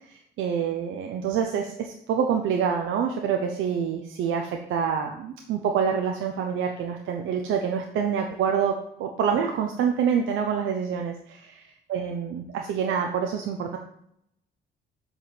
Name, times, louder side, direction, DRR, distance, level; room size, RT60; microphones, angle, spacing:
voice 1, 0.1-11.5 11.9-13.8, right 7 dB, 80° right, 3 dB, 0.9 m, -26 dB
7.0 x 4.8 x 5.8 m, 0.73 s
cardioid pair, 90°, 20 cm